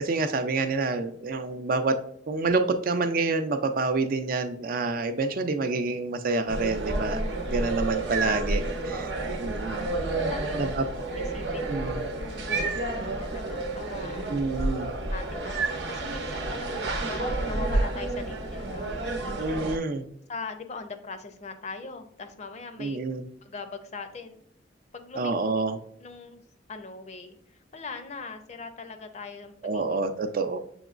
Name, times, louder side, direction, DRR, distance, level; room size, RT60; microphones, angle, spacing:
voice 1, 0.0-2.0 2.3-7.2 7.5-9.1 9.4-9.9 10.6-10.9 11.7-12.0 14.3-14.9 19.4-20.0 22.8-23.2 25.2-25.8 29.6-30.6, right 3 dB, 50° right, 9 dB, 0.4 m, -27 dB
sound 1, 6.5-19.8, right 2 dB, 75° right, 0.8 m, -30 dB
voice 2, 10.2-10.8 11.2-11.7 12.2-14.4 15.1-18.9 20.3-23.0 23.4-24.4 24.9-25.3 26.0-26.4 26.7-29.9, left 3 dB, 40° left, 8 dB, 0.5 m, -40 dB
7.0 x 3.0 x 2.4 m, 0.71 s
head